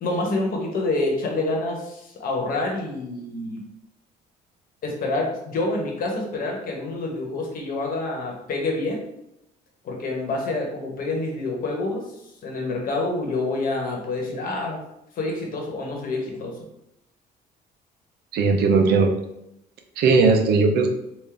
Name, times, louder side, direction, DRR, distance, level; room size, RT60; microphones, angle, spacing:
voice 1, 0.0-3.6 4.8-9.0 9.8-12.0 12.4-14.8 15.2-16.5, left 2 dB, 55° left, 0 dB, 1.1 m, -27 dB
voice 2, 18.3-19.1 20.0-20.9, right 4 dB, 70° right, 4 dB, 0.6 m, -18 dB
3.6 x 2.6 x 3.3 m, 0.81 s
cardioid pair, 110°, 17 cm